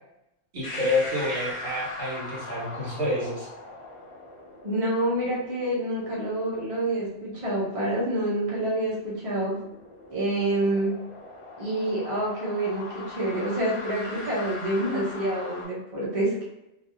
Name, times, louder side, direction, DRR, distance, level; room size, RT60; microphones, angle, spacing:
voice 1, 0.5-3.5, left 1 dB, 60° right, -8 dB, 1.8 m, -28 dB
sound 1, 0.6-15.6, left 2 dB, 35° left, 0.6 m, -41 dB
voice 2, 4.6-9.5 10.1-10.9 11.6-16.4, right 1 dB, 30° right, -6 dB, 0.8 m, -27 dB
3.2 x 2.4 x 2.7 m, 0.89 s
omnidirectional pair, 1.3 m